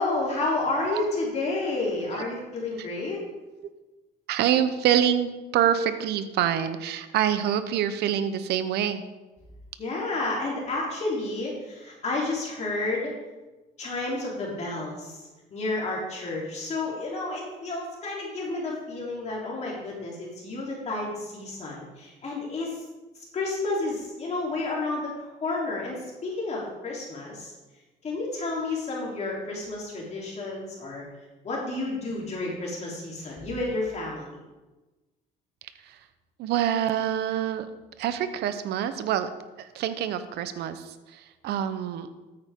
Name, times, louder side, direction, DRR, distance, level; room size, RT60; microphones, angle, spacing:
voice 1, 0.0-3.2 9.8-13.1 13.8-22.8 23.3-27.5 28.0-31.0 31.4-34.4, left 2 dB, 40° left, -4 dB, 3.4 m, -31 dB
voice 2, 4.3-9.0 35.9-36.0 36.4-37.7 38.0-39.3 39.6-42.1, right 10 dB, 75° right, 11 dB, 0.9 m, -26 dB
13.5 x 8.8 x 3.7 m, 1.2 s
cardioid pair, 110°, 17 cm